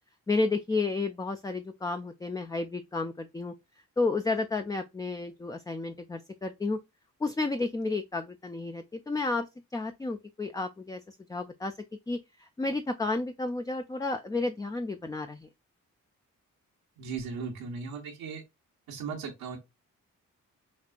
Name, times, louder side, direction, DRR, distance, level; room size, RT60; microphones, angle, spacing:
voice 1, 0.3-3.5 4.0-6.8 7.2-9.5 9.7-11.0 11.3-11.7 12.1-12.2 12.6-15.5, left 3 dB, 10° left, 0.4 m, -31 dB
voice 2, 17.0-18.4 18.9-19.6, right 5 dB, 85° right, 1.0 m, -37 dB
5.2 x 2.4 x 2.2 m
supercardioid pair, 40°, 36 cm